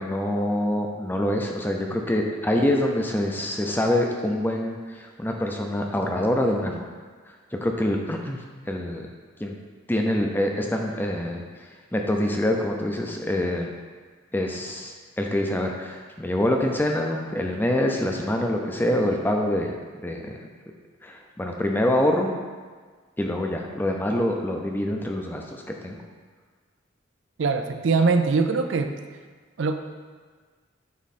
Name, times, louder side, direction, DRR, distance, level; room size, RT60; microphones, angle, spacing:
voice 1, 0.0-6.9 7.3-7.4 7.6-9.1 9.4-9.5 9.9-13.7 14.3-19.7 20.0-20.4 21.0-22.3 23.2-26.0, left 1 dB, 10° left, 2 dB, 0.5 m, -25 dB
voice 2, 27.4-28.9 29.6-29.7, right 4 dB, 80° right, 7 dB, 0.5 m, -22 dB
9.3 x 3.1 x 4.2 m, 1.5 s
head